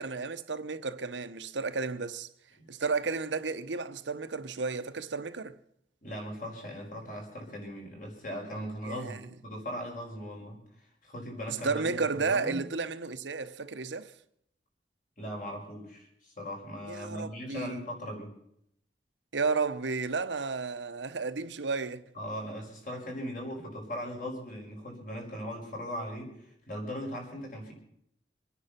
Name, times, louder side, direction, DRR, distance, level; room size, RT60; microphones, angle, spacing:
voice 1, 0.0-2.3 2.7-5.5 8.8-9.2 11.5-14.1 16.8-17.8 19.3-22.0, right 4 dB, 90° right, 0.9 m, -32 dB
voice 2, 6.0-10.6 11.0-12.6 15.2-18.3 22.1-27.7, equal, 45° left, 5.4 m, -39 dB
25.0 x 9.8 x 5.8 m
head